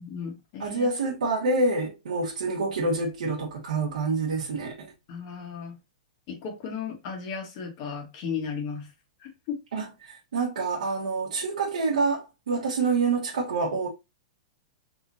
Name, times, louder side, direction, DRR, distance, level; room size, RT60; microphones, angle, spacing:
voice 1, 0.0-0.9 5.1-5.7 6.3-8.9 9.2-9.6, left 6 dB, 40° left, 1.6 m, -35 dB
voice 2, 0.6-4.9 9.7-13.9, right 3 dB, 90° right, 1.4 m, -27 dB
4.3 x 3.5 x 2.7 m
hypercardioid pair, 155°, 4 cm